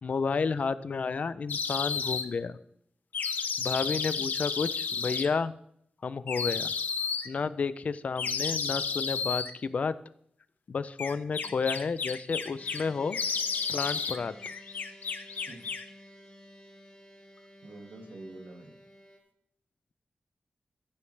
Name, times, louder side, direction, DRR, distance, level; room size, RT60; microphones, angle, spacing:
voice 1, 0.0-2.6 3.6-5.5 6.0-6.7 7.3-9.9 10.7-13.2 13.7-14.3, left 5 dB, 50° left, 14 dB, 0.4 m, -31 dB
sound 1, 1.5-2.3 3.1-5.3 6.3-7.3 8.2-9.5 11.0-12.8 13.1-14.2 14.4-15.9, left 5 dB, 80° left, 0.8 m, -32 dB
sound 2, 12.6-19.2, left 1 dB, 25° left, 1.7 m, -53 dB
voice 2, 17.6-18.7, right 2 dB, 75° right, 2 dB, 2.0 m, -47 dB
15.0 x 8.4 x 3.3 m, 0.71 s
wide cardioid pair, 175°, 3 cm